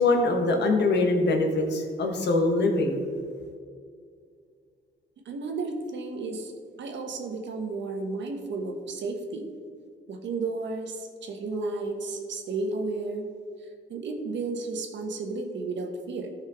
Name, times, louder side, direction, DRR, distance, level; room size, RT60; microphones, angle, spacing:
voice 1, 0.0-3.0, left 2 dB, 60° left, 4 dB, 1.3 m, -23 dB
voice 2, 5.2-6.5 6.8-9.5 10.1-13.3 13.6-16.3, right 3 dB, 65° right, 3 dB, 1.3 m, -33 dB
13.0 x 5.5 x 3.6 m, 2.2 s
cardioid pair, 90°, 20 cm